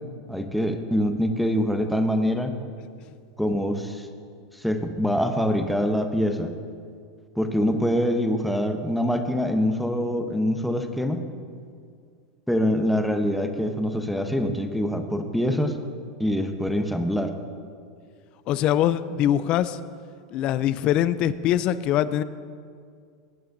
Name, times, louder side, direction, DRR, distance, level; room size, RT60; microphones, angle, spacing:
voice 1, 0.3-2.5 3.4-4.1 4.5-6.5 7.4-11.3 12.5-15.8 16.2-17.3, equal, ahead, 5 dB, 0.9 m, -24 dB
voice 2, 18.5-19.8 20.3-22.2, left 11 dB, 45° left, 15 dB, 0.4 m, -23 dB
17.5 x 8.7 x 2.7 m, 2.1 s
hypercardioid pair, 110°, 2 cm